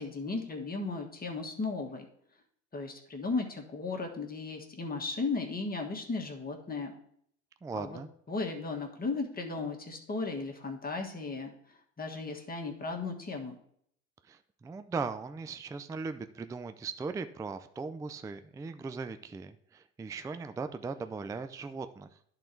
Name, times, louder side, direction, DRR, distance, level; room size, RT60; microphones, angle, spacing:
voice 1, 0.0-2.1 2.7-6.9 7.7-8.0 8.3-11.5 12.0-13.6, left 3 dB, 25° left, 2 dB, 1.5 m, -35 dB
voice 2, 7.6-8.1 14.3-22.1, right 4 dB, 10° right, 10 dB, 0.4 m, -38 dB
10.5 x 4.0 x 4.4 m, 0.67 s
hypercardioid pair, 75°, 36 cm